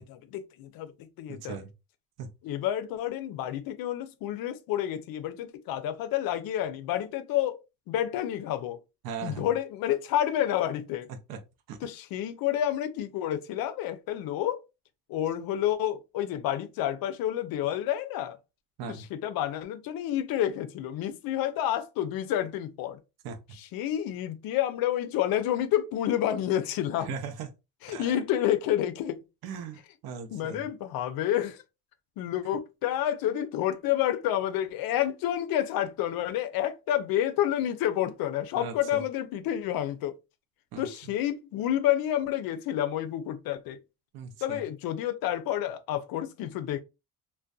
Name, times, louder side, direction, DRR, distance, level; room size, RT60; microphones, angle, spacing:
voice 1, 0.0-1.6 2.4-7.6 7.9-8.8 9.2-11.1 11.8-14.6 15.1-18.4 18.9-23.0 23.5-27.2 27.8-29.2 30.3-31.6 32.2-40.1 40.8-43.8 44.4-46.8, left 11 dB, 70° left, 0.5 m, -29 dB
voice 2, 1.3-1.7 2.2-2.3 9.0-9.5 11.3-11.4 11.7-11.8 18.8-19.0 23.2-23.4 27.0-27.5 27.9-28.1 29.4-30.7 38.5-39.0 40.7-40.9 44.1-44.6, right 6 dB, 75° right, 0.6 m, -38 dB
2.5 x 2.1 x 2.3 m
cardioid pair, 125°, 37 cm